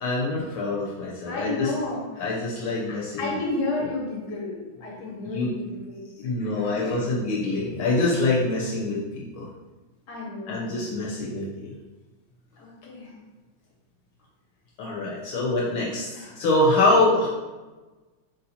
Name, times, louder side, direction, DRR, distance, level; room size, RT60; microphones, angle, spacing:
voice 1, 0.0-1.7 2.2-3.4 5.2-5.5 6.2-9.5 10.5-11.7 14.8-17.3, left 2 dB, 75° left, -5 dB, 1.5 m, -25 dB
voice 2, 1.3-7.0 10.1-10.7 12.6-13.1 16.1-16.3, left 2 dB, 55° left, -3 dB, 1.5 m, -32 dB
4.1 x 2.7 x 4.1 m, 1.2 s
omnidirectional pair, 2.3 m